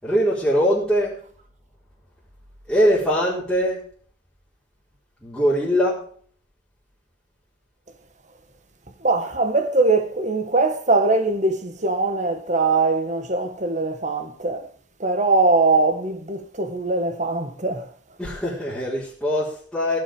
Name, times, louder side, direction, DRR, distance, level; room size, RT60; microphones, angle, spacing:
voice 1, 0.0-1.2 2.7-3.9 5.2-6.1 18.2-20.0, equal, ahead, 4.4 m, -22 dB
voice 2, 9.0-14.7 15.0-17.9, right 3 dB, 40° right, 1.7 m, -21 dB
17.0 x 8.8 x 5.1 m
head